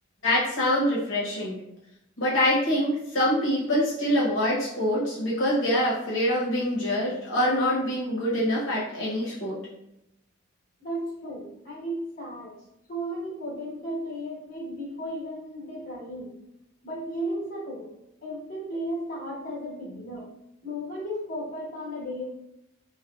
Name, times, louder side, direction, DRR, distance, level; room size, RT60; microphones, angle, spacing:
voice 1, 0.2-1.6 2.2-9.6, left 1 dB, 80° left, -8 dB, 0.9 m, -25 dB
voice 2, 10.8-12.6 12.9-16.3 16.8-17.9 18.2-20.3 20.6-22.3, equal, 45° left, -6 dB, 1.2 m, -34 dB
3.2 x 2.1 x 2.3 m, 0.83 s
head